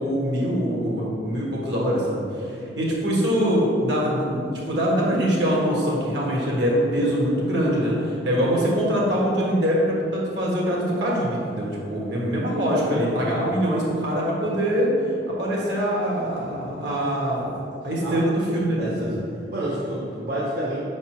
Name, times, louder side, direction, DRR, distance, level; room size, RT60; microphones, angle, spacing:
voice 1, 0.0-2.2 2.8-15.0 15.3-17.6 17.8-19.2, equal, 75° right, -4 dB, 1.6 m, -23 dB
voice 2, 18.8-19.2 19.5-20.8, right 1 dB, 60° right, -8 dB, 1.0 m, -29 dB
5.3 x 4.1 x 6.0 m, 2.5 s
head